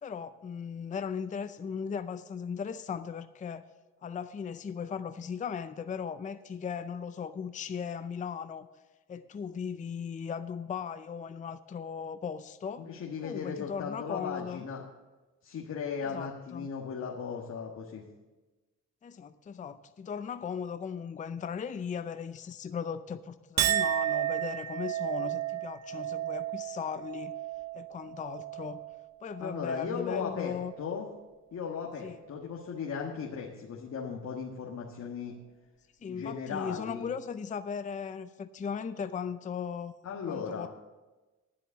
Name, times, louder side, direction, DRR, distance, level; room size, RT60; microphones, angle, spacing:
voice 1, 0.0-3.6 4.0-8.7 9.1-12.9 13.2-14.7 16.0-16.7 19.0-27.3 27.7-28.8 29.2-30.7 32.0-32.2 36.0-39.9 40.3-40.7, left 6 dB, 25° left, 12 dB, 0.5 m, -37 dB
voice 2, 12.8-14.8 15.4-18.0 29.4-31.1 31.5-35.3 36.0-37.1 40.0-40.7, left 6 dB, 60° left, -1 dB, 1.5 m, -37 dB
Chink clink, 23.6-30.1 30.5-31.1, right 12 dB, 60° right, 0.6 m, -33 dB
10.0 x 7.7 x 7.0 m, 1.2 s
cardioid pair, 90°, 30 cm